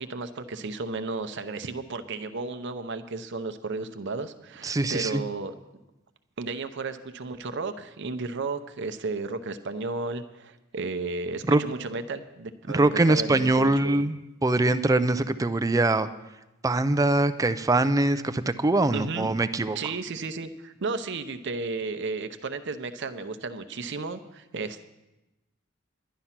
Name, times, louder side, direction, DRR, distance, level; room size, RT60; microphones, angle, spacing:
voice 1, 0.0-5.5 6.4-14.0 18.9-19.3 19.7-24.8, right 3 dB, 60° right, 10 dB, 0.7 m, -33 dB
voice 2, 4.6-5.2 11.5-11.6 12.7-14.2 14.4-16.1 16.6-19.8, right 2 dB, 15° right, 11 dB, 0.4 m, -23 dB
11.5 x 11.0 x 5.8 m, 1.0 s
head